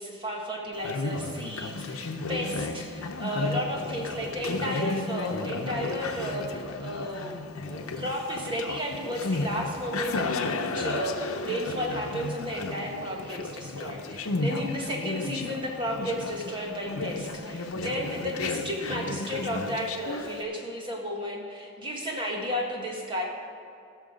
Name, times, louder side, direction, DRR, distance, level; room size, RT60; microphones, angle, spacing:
voice 1, 0.0-7.4 7.6-23.2, equal, 20° right, -1 dB, 1.8 m, -33 dB
Conversation, 0.7-20.4, left 3 dB, 80° left, 0.8 m, -33 dB
18.5 x 6.5 x 5.2 m, 2.4 s
head